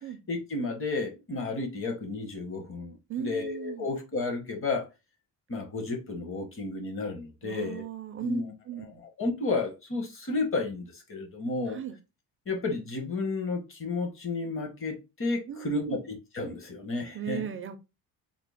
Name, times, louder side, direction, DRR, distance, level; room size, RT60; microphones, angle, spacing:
voice 1, 0.3-4.9 5.5-7.8 8.2-8.9 9.2-11.8 12.5-17.4, left 3 dB, 35° left, 1.1 m, -32 dB
voice 2, 3.1-3.9 7.4-9.0 11.7-12.0 15.5-16.0 17.1-17.8, right 9 dB, 35° right, 0.4 m, -37 dB
3.8 x 2.0 x 3.4 m
cardioid pair, 140°, 38 cm